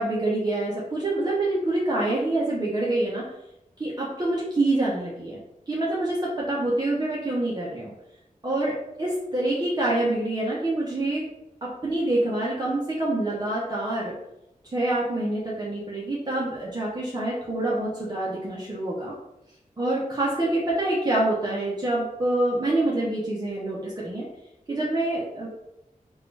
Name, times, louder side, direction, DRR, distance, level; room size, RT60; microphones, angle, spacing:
voice 1, 0.0-3.2 3.8-5.4 5.7-7.9 8.4-11.2 11.6-14.2 14.7-19.1 19.8-24.3 24.7-25.5, right 2 dB, 30° right, -6 dB, 1.1 m, -26 dB
4.1 x 2.6 x 4.7 m, 0.85 s
wide cardioid pair, 70°, 15 cm